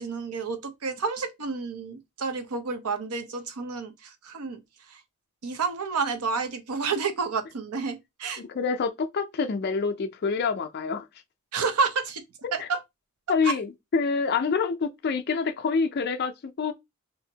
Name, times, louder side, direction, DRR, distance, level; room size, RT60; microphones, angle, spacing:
voice 1, 0.0-4.6 4.9-5.0 5.4-8.4 11.5-12.2 12.5-12.8 13.4-13.6, right 5 dB, 85° right, 0.6 m, -30 dB
voice 2, 8.4-11.1 12.4-12.7 13.3-16.7, left 5 dB, 45° left, 0.4 m, -27 dB
2.8 x 2.6 x 2.7 m
head